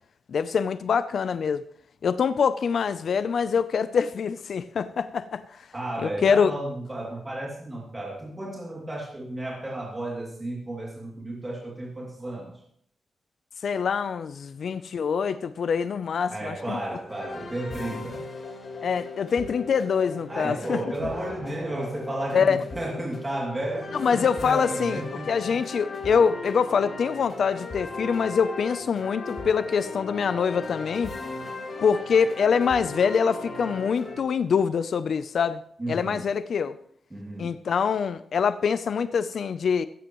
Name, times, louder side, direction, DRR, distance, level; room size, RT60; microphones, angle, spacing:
voice 1, 0.3-1.6 2.0-5.4 6.0-6.5 13.6-16.8 18.8-20.8 22.3-22.6 24.0-25.0 25.3-31.1 31.8-35.6 35.9-36.8 37.4-39.9, left 6 dB, 60° left, 0.5 m, -24 dB
voice 2, 5.7-12.6 16.3-18.3 20.3-25.6 26.1-26.2 35.8-36.2 37.1-37.6, right 1 dB, 20° right, 2.6 m, -33 dB
sound 1, 17.1-34.2, left 3 dB, 40° left, 3.5 m, -37 dB
15.5 x 14.5 x 3.1 m
wide cardioid pair, 150°, 0 cm